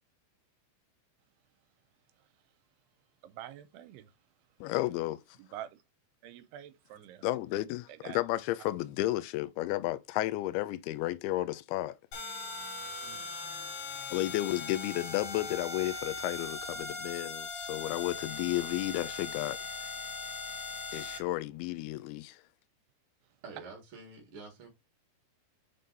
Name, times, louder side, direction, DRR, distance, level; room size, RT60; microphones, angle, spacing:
voice 1, 3.2-4.1 5.4-5.7 6.2-7.3 7.9-8.2 13.0-13.3, right 12 dB, 85° right, 2.6 m, -46 dB
voice 2, 4.6-5.2 7.2-12.0 14.1-19.9 20.9-22.4, left 16 dB, 80° left, 2.4 m, -33 dB
sound 1, 12.1-21.2, left 3 dB, 65° left, 3.0 m, -39 dB
voice 3, 23.4-24.7, right 3 dB, 50° right, 1.7 m, -47 dB
6.8 x 3.8 x 4.0 m
omnidirectional pair, 4.8 m